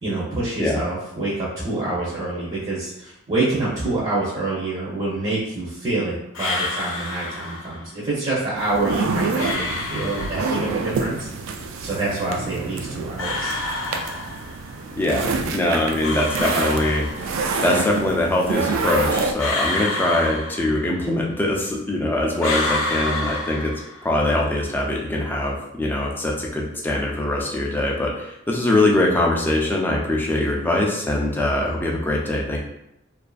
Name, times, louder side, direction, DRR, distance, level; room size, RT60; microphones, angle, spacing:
voice 1, 0.0-11.3 11.6-13.5, right 2 dB, 30° right, -8 dB, 0.6 m, -26 dB
sound 1, 6.3-7.8 9.4-10.8 13.2-14.7 16.0-17.6 19.4-21.1 22.4-24.2, left 2 dB, 85° left, 0.5 m, -28 dB
sound 2, 8.6-19.3, right 4 dB, 80° right, 0.3 m, -27 dB
voice 2, 15.0-23.7 24.0-32.6, left 1 dB, 10° left, -2 dB, 0.4 m, -22 dB
2.5 x 2.4 x 2.3 m, 0.83 s
head